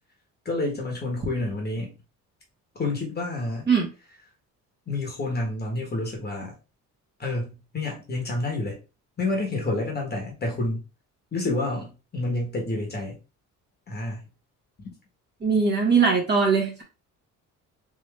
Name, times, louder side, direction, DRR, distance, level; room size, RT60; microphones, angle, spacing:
voice 1, 0.4-2.0 2.8-3.7 4.9-6.5 7.2-8.8 9.2-10.8 11.3-13.2 13.9-14.2, left 2 dB, 30° left, 1.5 m, -29 dB
voice 2, 15.4-16.8, right 5 dB, 30° right, 1.4 m, -21 dB
3.6 x 3.1 x 3.3 m
cardioid pair, 110°, 34 cm